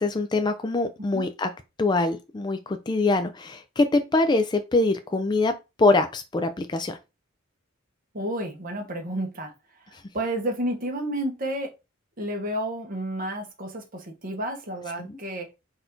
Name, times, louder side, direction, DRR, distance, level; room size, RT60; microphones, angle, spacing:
voice 1, 0.0-1.5 1.8-7.0 15.0-15.2, left 2 dB, 20° left, 0.4 m, -24 dB
voice 2, 8.1-9.5 10.1-11.7 12.2-15.5, right 1 dB, 40° right, 1.1 m, -30 dB
4.2 x 2.6 x 4.4 m
head